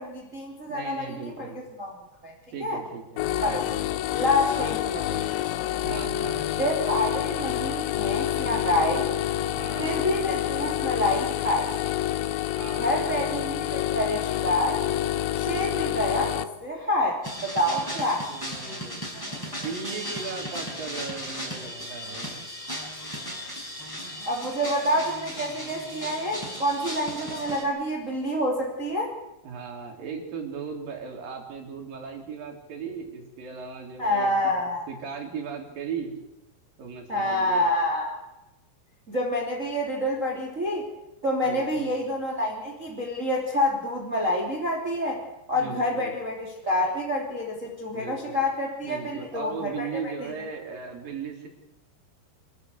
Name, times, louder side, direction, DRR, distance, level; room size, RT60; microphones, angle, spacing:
voice 1, 0.0-1.9 2.2-2.3 2.6-2.8 3.4-3.6 4.1-5.7 6.5-9.1 9.8-11.7 12.7-14.8 15.3-18.2 24.3-29.1 34.0-34.9 37.1-38.2 39.1-40.9 41.2-45.2 45.5-50.1, left 1 dB, 20° right, 0 dB, 2.7 m, -27 dB
voice 2, 0.7-1.6 2.5-3.8 5.8-6.5 9.5-10.1 12.6-13.1 17.9-22.4 29.4-34.5 34.9-36.1 36.8-37.7 41.4-41.9 45.5-46.1 47.9-48.4 48.8-51.5, right 5 dB, 50° right, 3 dB, 5.1 m, -37 dB
sound 1, 3.2-16.4, left 12 dB, 85° left, 3.2 m, -28 dB
sound 2, 17.2-27.6, equal, 5° left, 5.7 m, -36 dB
27.0 x 13.5 x 8.2 m, 0.97 s
omnidirectional pair, 5.2 m